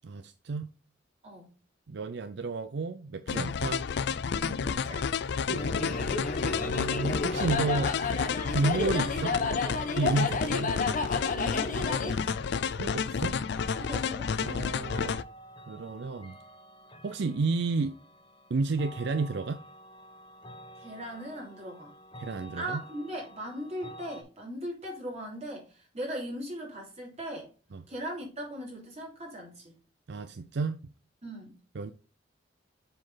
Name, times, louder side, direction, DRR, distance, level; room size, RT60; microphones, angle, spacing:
voice 1, 0.0-0.7 1.9-3.9 5.5-8.0 8.5-9.4 10.0-10.8 12.8-13.4 14.4-15.2 15.7-16.4 17.0-18.0 18.5-19.6 22.2-22.8 27.7-27.8 30.1-30.9 31.7-31.9, right 3 dB, 65° right, 0.5 m, -32 dB
sound 1, 3.3-15.2, left 6 dB, 65° left, 0.4 m, -31 dB
voice 2, 4.3-5.3 10.3-10.5 11.3-12.4 13.8-14.3 14.9-15.1 20.8-21.9 22.5-27.5 27.9-29.7 31.2-31.6, equal, 35° right, 3.4 m, -39 dB
sound 2, 5.0-24.2, equal, 25° left, 1.2 m, -51 dB
sound 3, 5.5-12.2, left 3 dB, 45° left, 1.0 m, -31 dB
7.6 x 4.4 x 3.9 m
head